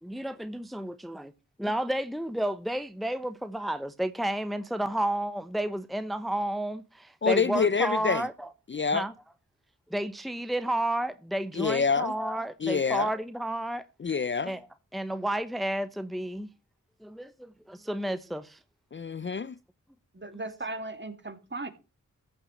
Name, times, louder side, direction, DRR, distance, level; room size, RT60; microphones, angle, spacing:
voice 1, 0.0-1.3 1.6-8.5 8.9-9.1 9.9-13.9 14.4-14.7 14.9-16.5 17.0-18.6, right 1 dB, ahead, 1.0 m, -31 dB
voice 2, 7.2-8.2 8.7-9.1 11.5-12.1 12.6-13.1 14.0-14.5 18.9-19.5, left 5 dB, 40° left, 0.5 m, -26 dB
voice 3, 20.1-21.7, right 2 dB, 35° right, 2.4 m, -37 dB
14.5 x 6.1 x 6.3 m
cardioid pair, 50°, 32 cm